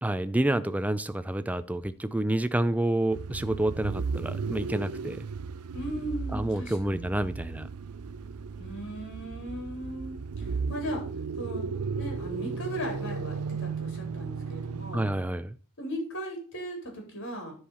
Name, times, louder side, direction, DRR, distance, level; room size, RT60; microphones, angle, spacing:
voice 1, 0.0-5.2 6.3-7.7 14.9-15.6, right 1 dB, 5° right, 0.4 m, -28 dB
sound 1, 3.1-15.3, right 5 dB, 90° right, 0.6 m, -35 dB
voice 2, 5.7-7.1 8.6-11.0 11.4-15.0 15.8-17.5, right 1 dB, 55° left, 3.9 m, -37 dB
10.0 x 4.8 x 5.5 m
head